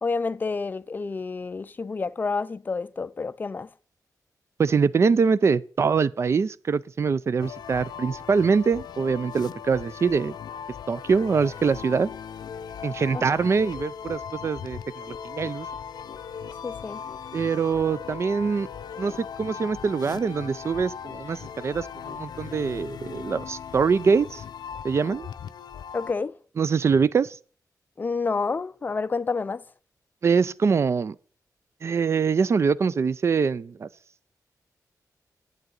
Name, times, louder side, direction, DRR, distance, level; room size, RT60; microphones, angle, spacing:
voice 1, 0.0-3.7 16.6-17.0 25.9-26.4 28.0-29.6, left 4 dB, 30° left, 0.4 m, -29 dB
voice 2, 4.6-10.3 10.9-12.1 12.8-15.7 17.3-18.7 19.0-24.4 24.8-25.3 26.6-27.4 30.2-31.2 31.8-33.9, right 5 dB, 40° right, 0.3 m, -24 dB
sound 1, 7.4-26.1, left 7 dB, 90° left, 0.5 m, -38 dB
11.0 x 8.7 x 3.9 m
wide cardioid pair, 150°, 7 cm